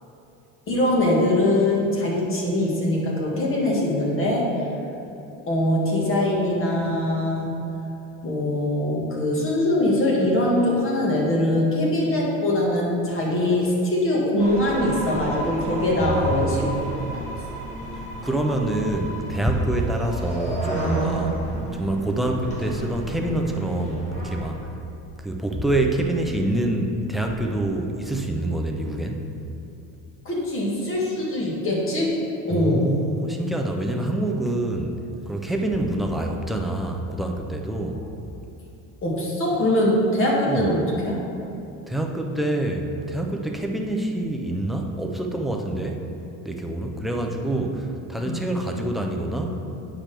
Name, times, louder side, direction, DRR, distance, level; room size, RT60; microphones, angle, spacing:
voice 1, 0.7-4.5 5.5-7.5 8.2-16.8 17.1-17.2 30.2-32.2 32.5-32.9 39.0-41.2 48.2-48.4, left 1 dB, 35° left, -3 dB, 1.6 m, -22 dB
sound 1, 14.4-24.5, right 1 dB, 15° left, 1.6 m, -32 dB
voice 2, 16.0-16.9 18.2-21.4 21.7-24.7 25.2-29.2 32.5-35.0 35.3-38.0 40.5-40.7 41.9-46.0 46.4-49.6, right 1 dB, ahead, 1 dB, 0.3 m, -26 dB
8.6 x 6.0 x 3.4 m, 2.8 s
cardioid pair, 130°, 39 cm